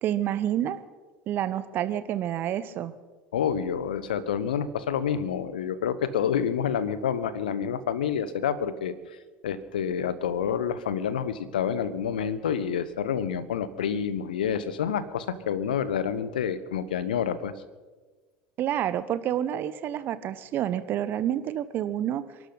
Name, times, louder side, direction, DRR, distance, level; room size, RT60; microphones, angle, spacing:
voice 1, 0.0-0.8 1.3-2.9 18.6-22.2, right 11 dB, 45° right, 13 dB, 1.1 m, -28 dB
voice 2, 3.3-8.9 9.4-17.5, left 8 dB, 70° left, 15 dB, 1.1 m, -28 dB
28.5 x 12.0 x 4.1 m, 1.3 s
figure-of-eight pair, 70°, 5 cm